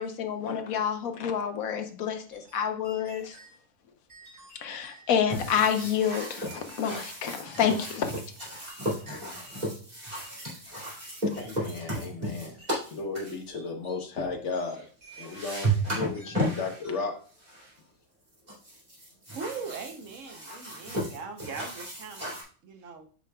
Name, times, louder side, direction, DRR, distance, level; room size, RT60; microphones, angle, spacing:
voice 1, 0.0-3.4 4.6-8.1, left 8 dB, 90° left, 6 dB, 1.3 m, -28 dB
sound 1, 2.3-3.6 4.1-6.0 6.4-7.8 8.7-9.7 10.2-12.3 12.6-12.9 13.5-14.1 14.5-15.8 16.1-16.5 16.8-17.2, right 2 dB, 45° right, 3.2 m, -53 dB
sound 2, 5.3-13.4 14.7-14.8 15.1-16.8 17.4-17.7 18.5-22.4, right 1 dB, 30° right, 2.6 m, -34 dB
voice 2, 11.4-14.8 15.2-17.1, left 4 dB, 60° left, 4 dB, 1.3 m, -34 dB
voice 3, 19.3-23.1, right 5 dB, 70° right, 5 dB, 1.2 m, -40 dB
8.8 x 4.9 x 2.3 m, 0.41 s
omnidirectional pair, 1.4 m